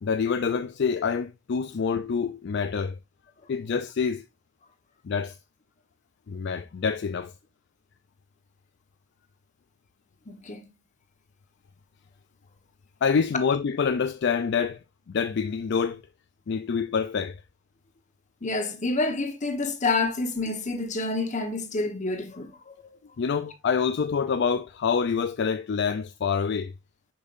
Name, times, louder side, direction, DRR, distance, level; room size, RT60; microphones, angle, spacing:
voice 1, 0.0-3.0 3.5-4.2 5.0-5.4 6.3-7.3 13.0-14.8 15.1-16.0 16.5-17.4 23.2-26.7, left 6 dB, 60° left, 0.4 m, -26 dB
voice 2, 10.3-10.6 18.4-23.0, left 3 dB, 40° left, 1.1 m, -28 dB
7.0 x 5.4 x 2.5 m
head